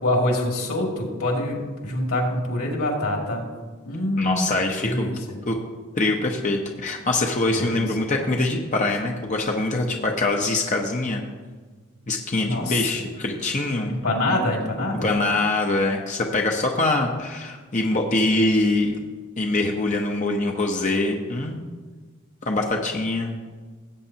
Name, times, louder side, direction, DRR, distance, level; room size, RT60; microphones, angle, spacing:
voice 1, 0.0-3.4 3.8-4.5 4.8-5.4 7.6-7.8 12.4-13.1 13.9-15.1, left 1 dB, 90° left, 0 dB, 2.4 m, -25 dB
voice 2, 4.2-5.1 5.5-5.6 5.9-11.2 12.1-13.9 15.0-18.9 19.4-21.6 22.4-23.3, left 2 dB, 35° left, 1 dB, 0.8 m, -24 dB
17.5 x 8.1 x 2.8 m, 1.4 s
head